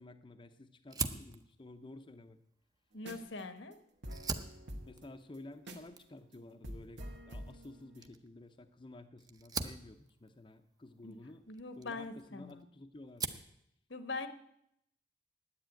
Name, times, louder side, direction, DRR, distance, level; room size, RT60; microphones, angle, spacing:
voice 1, 0.0-2.4 4.8-11.5 11.7-13.4, left 2 dB, 25° left, 6 dB, 0.6 m, -52 dB
Fire, 0.9-3.5 4.0-12.6 12.9-13.6, right 4 dB, 20° right, 0.7 m, -44 dB
voice 2, 2.9-3.8 11.0-11.2 11.5-12.6 13.9-14.3, left 3 dB, 75° left, 9 dB, 1.1 m, -42 dB
sound 1, 3.0-3.4 3.7-3.8 4.0-6.0 6.3-6.4 6.6-8.1, equal, 70° right, 1.7 m, -47 dB
10.0 x 8.6 x 9.0 m, 0.77 s
head